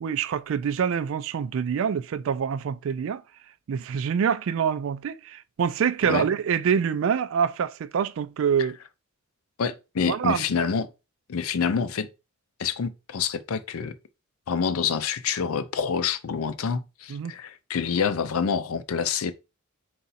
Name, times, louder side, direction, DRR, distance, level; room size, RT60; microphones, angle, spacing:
voice 1, 0.0-3.2 3.7-8.8 10.0-10.5 17.1-17.3, right 7 dB, 65° right, 0.3 m, -26 dB
voice 2, 9.6-10.9 11.3-12.1 12.6-13.9 14.5-19.3, left 6 dB, 85° left, 0.5 m, -27 dB
4.0 x 2.4 x 4.0 m
head